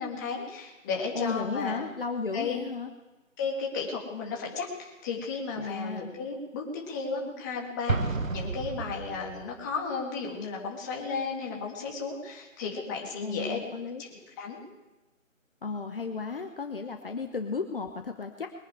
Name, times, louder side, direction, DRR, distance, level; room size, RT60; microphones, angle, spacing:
voice 1, 0.0-1.9 2.3-2.6 3.4-13.7 14.0-14.6, left 4 dB, 15° left, -1 dB, 2.1 m, -34 dB
voice 2, 1.1-2.9 5.5-6.1 13.2-14.0 15.6-18.5, left 4 dB, 45° left, 5 dB, 1.2 m, -34 dB
Explosion, 7.9-9.6, right 3 dB, 80° right, 1.5 m, -31 dB
22.0 x 10.0 x 4.9 m, 1.1 s
figure-of-eight pair, 160°, 39 cm